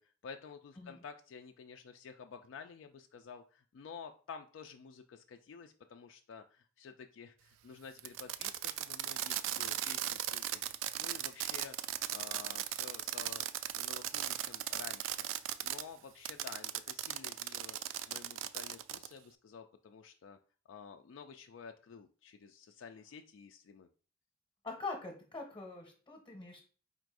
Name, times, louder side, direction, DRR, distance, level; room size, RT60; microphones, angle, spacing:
voice 1, 0.0-11.8 12.1-13.4 13.7-15.3 15.6-20.4 20.7-23.9, left 6 dB, 70° left, 5 dB, 0.3 m, -51 dB
Fireworks, 8.0-15.8 16.2-19.1, right 12 dB, 75° right, 0.3 m, -37 dB
voice 2, 24.6-26.6, left 3 dB, 25° left, 1 dB, 0.8 m, -43 dB
4.4 x 2.5 x 4.6 m, 0.39 s
head